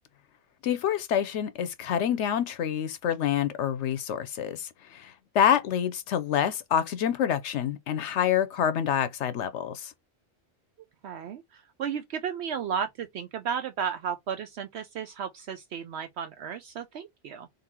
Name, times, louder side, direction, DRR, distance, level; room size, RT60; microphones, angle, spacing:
voice 1, 0.6-9.9, left 9 dB, 75° left, 0.9 m, -27 dB
voice 2, 11.0-17.5, right 7 dB, 70° right, 0.8 m, -34 dB
3.9 x 2.7 x 4.2 m
omnidirectional pair, 1.2 m